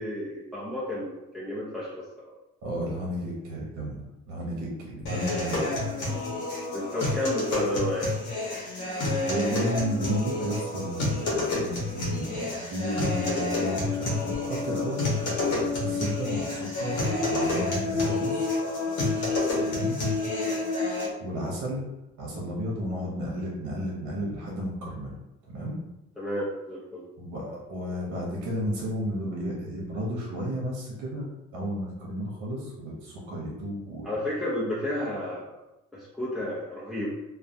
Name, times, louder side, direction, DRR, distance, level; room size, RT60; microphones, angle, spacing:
voice 1, 0.0-2.3 6.7-8.1 26.2-27.1 34.0-35.4 35.9-37.1, left 1 dB, ahead, -9 dB, 0.6 m, -31 dB
voice 2, 2.6-4.0 4.3-5.7 9.2-18.5 19.6-20.0 21.2-21.8 22.2-25.1 25.5-25.7 27.2-34.1, equal, 85° right, -3 dB, 0.7 m, -33 dB
sound 1, 5.1-21.1, left 2 dB, 70° left, 0.9 m, -29 dB
2.3 x 2.1 x 2.6 m, 0.94 s
cardioid pair, 90°, 30 cm